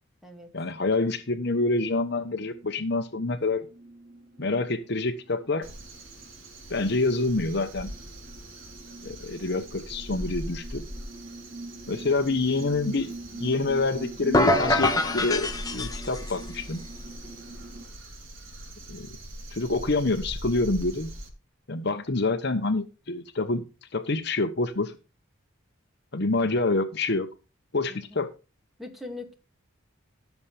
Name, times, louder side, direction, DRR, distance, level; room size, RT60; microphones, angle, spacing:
voice 1, 0.5-3.7 4.4-5.7 6.7-7.9 9.0-10.8 11.9-16.8 18.9-19.1 19.5-21.1 21.7-23.6 23.9-24.9 26.1-27.3 27.7-28.3, left 3 dB, 55° left, 8 dB, 1.0 m, -27 dB
sound 1, 1.2-17.9, right 2 dB, 50° right, 2.5 m, -45 dB
Crow, 5.6-21.3, right 1 dB, 80° right, 3.7 m, -42 dB
sound 2, 14.3-16.4, left 1 dB, 20° left, 1.2 m, -24 dB
voice 2, 27.9-28.2 28.8-29.4, left 2 dB, ahead, 3 dB, 2.3 m, -41 dB
16.5 x 7.3 x 3.4 m, 0.31 s
head